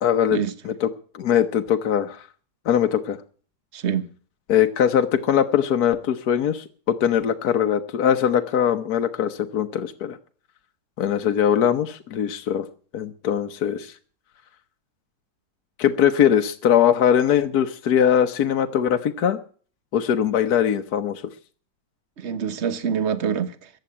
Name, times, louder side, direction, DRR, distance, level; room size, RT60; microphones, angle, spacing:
voice 1, 0.0-0.4 0.6-0.9 1.1-2.2 2.6-3.2 4.5-10.2 11.0-12.7 12.9-13.9 15.8-19.4 19.9-21.2, left 9 dB, 60° left, 1.3 m, -21 dB
voice 2, 3.7-4.1 22.2-23.7, right 7 dB, 40° right, 1.3 m, -25 dB
14.5 x 9.1 x 8.6 m
omnidirectional pair, 2.1 m